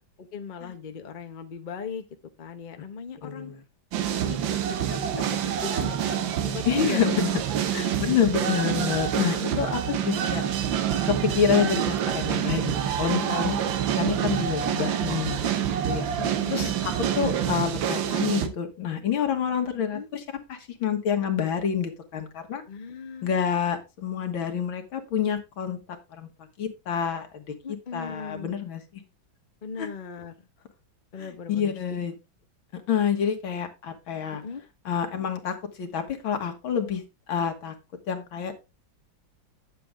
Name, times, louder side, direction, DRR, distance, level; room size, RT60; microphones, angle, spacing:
voice 1, 0.2-2.1 2.4-3.5 4.2-7.4 7.7-7.8 8.5-8.6 9.5-10.3 11.6-11.7 13.2-13.4 16.2-16.8 19.9-20.1 22.7-23.3 27.6-28.6 29.6-30.5 31.1-32.1 34.3-34.6, left 5 dB, 35° left, 7 dB, 0.8 m, -39 dB
voice 2, 3.2-3.6 6.7-7.3 7.7-9.8 10.1-10.4 11.0-13.6 14.0-16.1 16.5-20.2 20.5-22.6 23.2-25.8 26.1-26.3 26.6-27.4 27.9-29.0 29.8-29.9 31.2-32.1 32.7-34.4 34.9-37.0 37.3-37.8 38.1-38.5, left 7 dB, 80° left, 6 dB, 2.3 m, -28 dB
sound 1, 3.9-18.5, right 9 dB, 75° right, 1.7 m, -27 dB
9.3 x 7.8 x 3.5 m, 0.25 s
omnidirectional pair, 2.2 m